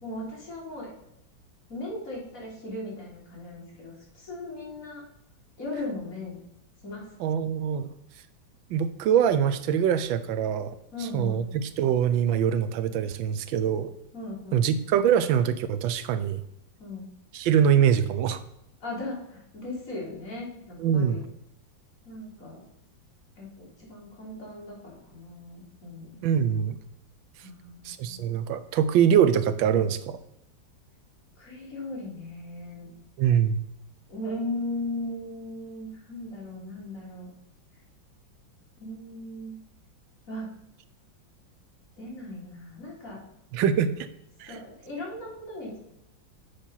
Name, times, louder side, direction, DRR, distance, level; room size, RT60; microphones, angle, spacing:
voice 1, 0.0-0.9 1.7-5.0 5.6-6.4 6.8-7.1 10.9-11.5 14.1-14.7 16.8-17.1 18.8-21.2 22.0-22.6 23.4-26.2 27.4-28.2 31.4-32.9 34.1-37.3 38.8-39.5 40.3-40.5 42.0-43.2 44.5-45.8, left 2 dB, 45° left, -4 dB, 3.3 m, -37 dB
voice 2, 7.2-7.9 8.7-10.7 11.1-13.9 14.5-16.4 17.3-18.4 20.8-21.2 26.2-26.8 27.8-30.2 33.2-33.6 43.5-44.1 44.4-44.6, right 8 dB, 80° right, 12 dB, 1.4 m, -24 dB
7.3 x 5.1 x 5.5 m, 0.81 s
omnidirectional pair, 2.1 m